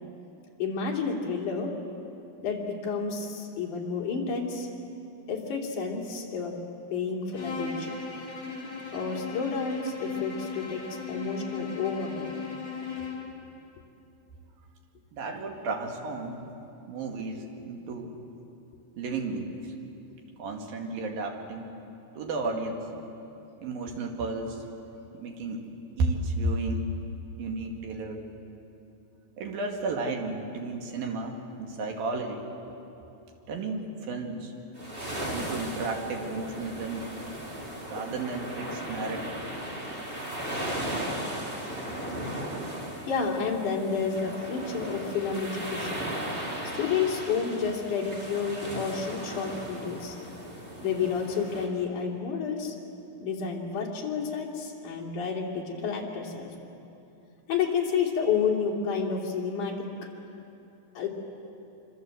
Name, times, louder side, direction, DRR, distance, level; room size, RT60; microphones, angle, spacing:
voice 1, 0.6-1.7 2.4-4.7 5.3-6.6 6.9-7.9 8.9-12.3 15.7-15.8 43.1-46.0 46.6-50.2 50.8-52.7 53.2-56.6 57.5-59.9 60.9-61.1, left 5 dB, 60° left, -1 dB, 4.3 m, -30 dB
Bowed string instrument, 7.3-13.3, left 5 dB, 35° left, 4.2 m, -37 dB
voice 2, 15.1-16.5 16.9-18.2 19.0-19.7 20.4-21.7 22.2-22.9 23.6-24.6 25.1-25.7 26.0-26.9 27.4-28.3 29.4-32.5 33.5-34.5 35.3-37.1 37.9-39.4, right 3 dB, 80° right, 2 dB, 4.0 m, -33 dB
sound 1, 34.8-51.7, right 1 dB, 15° right, 2.7 m, -36 dB
25.5 x 25.0 x 8.0 m, 2.8 s
omnidirectional pair, 4.1 m